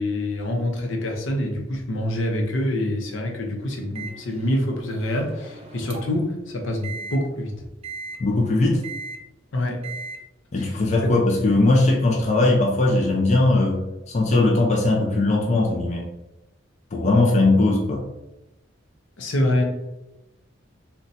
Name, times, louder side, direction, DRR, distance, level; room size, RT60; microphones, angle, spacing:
voice 1, 0.0-7.5 9.5-9.8 11.0-11.1 19.2-19.6, left 1 dB, 75° left, 1 dB, 0.6 m, -26 dB
Microwave oven, 4.0-6.3 6.8-7.2 7.8-8.2 8.8-9.2 9.8-10.2, right 4 dB, 30° right, 0.4 m, -37 dB
voice 2, 8.2-8.8 10.5-16.1 16.9-18.0, left 2 dB, 35° left, -1 dB, 0.5 m, -19 dB
2.6 x 2.2 x 3.9 m, 0.96 s
head